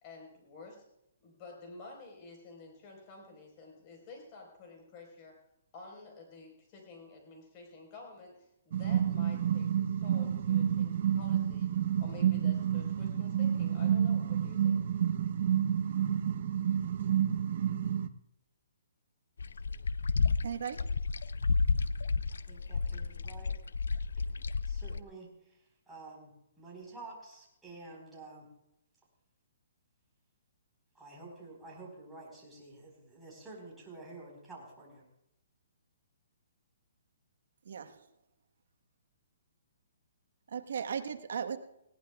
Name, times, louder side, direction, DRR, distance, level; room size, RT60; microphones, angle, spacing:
voice 1, 0.0-0.8 1.2-5.3 5.7-11.7 12.0-14.8, left 3 dB, 30° left, 2 dB, 4.5 m, -51 dB
sound 1, 8.7-18.1, right 9 dB, 55° right, 0.7 m, -29 dB
sound 2, 19.4-25.0, left 4 dB, 90° left, 0.4 m, -31 dB
voice 2, 20.4-20.8 37.6-38.0 40.5-41.6, right 7 dB, 70° right, 7 dB, 1.3 m, -36 dB
voice 3, 22.3-23.5 24.2-25.3 25.9-28.5 30.9-35.0, right 3 dB, 5° right, -5 dB, 4.4 m, -50 dB
19.5 x 17.5 x 2.4 m, 0.82 s
hypercardioid pair, 155°, 0 cm